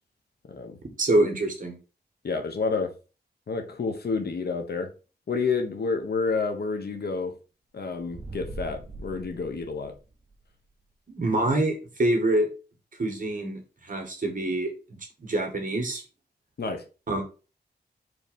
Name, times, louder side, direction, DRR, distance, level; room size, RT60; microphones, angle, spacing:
voice 1, 1.0-1.8 11.1-12.5 13.0-16.0 17.1-17.2, right 1 dB, 50° right, 2.1 m, -26 dB
voice 2, 2.2-2.9 3.5-4.9 5.3-7.3 7.7-9.9 16.6-16.8, left 4 dB, 65° left, 1.3 m, -29 dB
sound 1, 8.0-10.4, right 2 dB, 30° right, 0.9 m, -41 dB
4.9 x 3.9 x 5.3 m
wide cardioid pair, 110°, 18 cm